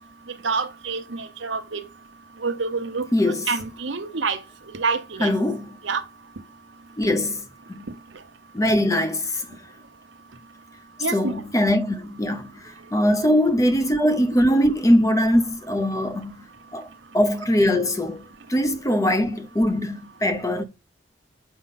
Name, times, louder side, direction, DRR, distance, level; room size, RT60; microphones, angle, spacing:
voice 1, 0.4-1.8 2.4-4.4 4.7-5.3 5.8-6.0 11.0-11.3, right 4 dB, 80° right, 0.9 m, -27 dB
voice 2, 3.1-3.5 5.2-5.8 7.0-7.8 8.5-9.5 11.1-16.4 16.7-16.9 17.1-18.2 18.5-20.6, left 1 dB, 15° left, 0.7 m, -21 dB
6.9 x 5.0 x 4.1 m
head